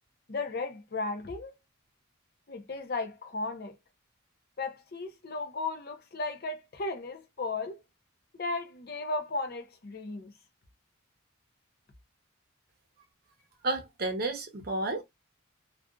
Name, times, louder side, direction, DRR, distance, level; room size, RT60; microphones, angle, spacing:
voice 1, 0.3-1.5 2.5-3.7 4.6-7.8 8.3-10.3, left 3 dB, 45° left, 0.5 m, -35 dB
voice 2, 13.6-15.0, right 2 dB, 45° right, 0.7 m, -31 dB
2.5 x 2.3 x 2.3 m
head